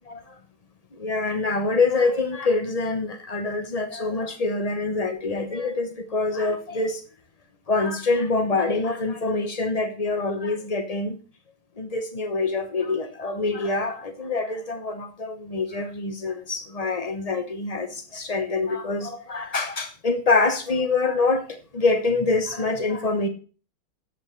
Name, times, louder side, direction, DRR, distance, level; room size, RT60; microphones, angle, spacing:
voice 1, 0.1-0.4 0.9-7.0 7.7-11.2 11.8-23.3, left 3 dB, 85° left, 0.3 m, -25 dB
16.5 x 7.7 x 3.2 m
omnidirectional pair, 2.2 m